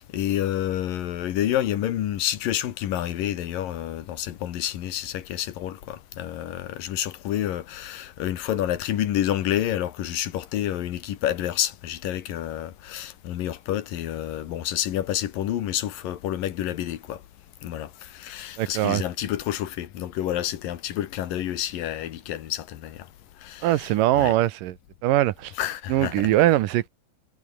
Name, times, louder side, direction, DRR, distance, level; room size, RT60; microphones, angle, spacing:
voice 1, 0.0-17.2 17.6-23.1 23.4-23.7 24.2-24.3 25.6-26.3, left 12 dB, 75° left, 3.2 m, -29 dB
voice 2, 18.6-19.0 23.6-24.8 25.0-25.5 25.9-26.9, right 14 dB, 75° right, 2.4 m, -21 dB
omnidirectional pair, 4.1 m